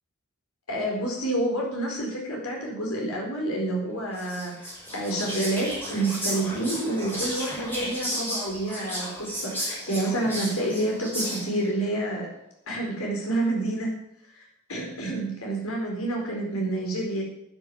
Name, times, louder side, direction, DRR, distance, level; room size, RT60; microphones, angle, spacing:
voice 1, 0.7-12.3 12.7-13.9 14.3-17.2, right 1 dB, 80° left, -1 dB, 4.4 m, -28 dB
Whispering, 4.1-11.7, equal, 10° left, 5.1 m, -34 dB
11.5 x 9.9 x 7.1 m, 0.77 s
head